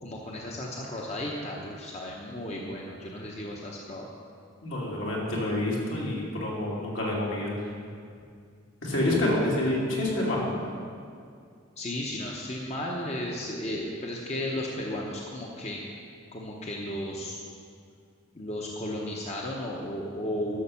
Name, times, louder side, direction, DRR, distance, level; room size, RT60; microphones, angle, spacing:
voice 1, 0.0-4.1 11.8-15.8 16.3-17.4 18.3-20.6, left 1 dB, 35° left, -2 dB, 0.9 m, -34 dB
voice 2, 4.6-7.7 8.8-10.6, left 1 dB, 70° left, -4 dB, 2.7 m, -28 dB
11.0 x 6.4 x 7.0 m, 2.3 s
head